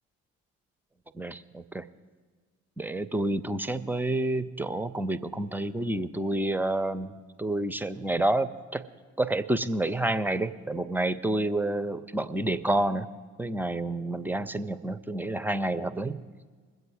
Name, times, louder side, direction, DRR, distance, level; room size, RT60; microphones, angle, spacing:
voice 1, 1.1-1.9 2.8-8.8 9.2-13.1 13.4-16.2, right 1 dB, 5° right, 13 dB, 0.5 m, -29 dB
21.5 x 7.9 x 4.7 m, 1.5 s
figure-of-eight pair, 40°, 38 cm